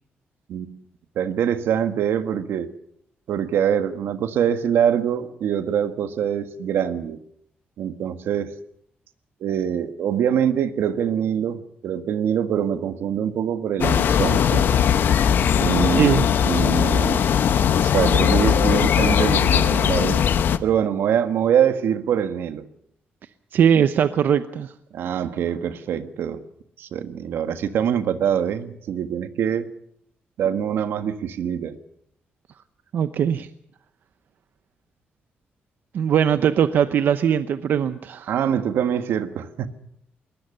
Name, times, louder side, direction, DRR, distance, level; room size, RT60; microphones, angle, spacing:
voice 1, 1.1-2.7 3.3-7.2 7.8-8.5 9.4-14.7 15.6-17.3 17.8-20.3 20.6-22.7 24.9-26.4 26.8-29.7 30.4-31.8 38.3-39.7, right 9 dB, 85° right, 9 dB, 1.6 m, -24 dB
sound 1, 13.8-20.6, left 8 dB, 65° left, 1.1 m, -19 dB
voice 2, 15.9-16.3 23.5-24.7 32.9-33.5 35.9-38.3, right 8 dB, 60° right, 11 dB, 0.8 m, -20 dB
22.0 x 19.5 x 6.6 m, 0.70 s
wide cardioid pair, 155°, 4 cm